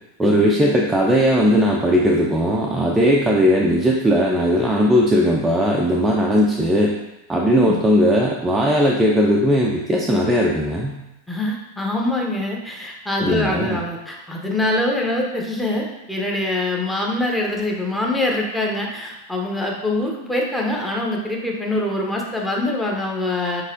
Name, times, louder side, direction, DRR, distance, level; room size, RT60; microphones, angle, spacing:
voice 1, 0.2-7.0 7.3-11.0 13.2-13.8, equal, 10° right, -2 dB, 0.5 m, -18 dB
voice 2, 11.3-23.6, left 1 dB, 5° left, -2 dB, 0.8 m, -24 dB
4.9 x 4.0 x 2.6 m, 0.96 s
figure-of-eight pair, 90°, 0 cm